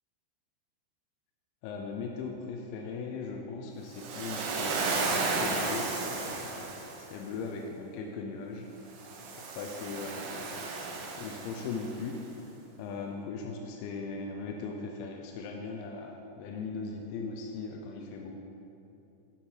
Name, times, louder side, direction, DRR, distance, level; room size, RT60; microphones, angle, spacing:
voice 1, 1.6-6.7 7.0-8.7 9.6-10.6 11.2-12.2 12.8-18.4, left 4 dB, 85° left, 2 dB, 2.6 m, -39 dB
Waves surf, 3.9-7.1 8.9-12.0, right 3 dB, 75° right, 2.9 m, -34 dB
11.0 x 4.4 x 4.6 m, 2.8 s
omnidirectional pair, 5.8 m